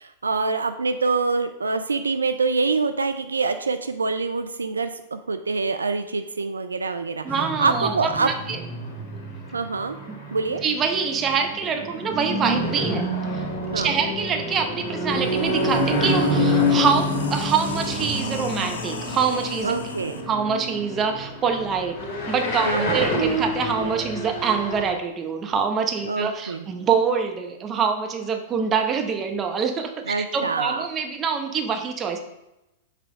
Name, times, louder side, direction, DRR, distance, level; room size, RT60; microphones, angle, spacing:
voice 1, 0.0-7.3 7.6-8.3 9.5-10.0 10.3-10.6 13.7-13.9 19.6-20.2 22.7-23.0 26.1-26.7 30.1-30.9, right 4 dB, 85° right, 9 dB, 0.3 m, -25 dB
voice 2, 7.2-8.6 10.1-10.2 10.6-13.1 13.3-13.4 13.7-19.7 20.3-22.0 22.3-32.2, right 6 dB, 25° right, 4 dB, 0.8 m, -25 dB
sound 1, 7.3-24.9, left 1 dB, 50° left, 1.7 m, -27 dB
sound 2, 14.5-14.6 14.9-20.2, left 5 dB, 70° left, 0.7 m, -37 dB
5.7 x 3.4 x 4.8 m, 0.92 s
figure-of-eight pair, 100°, 0 cm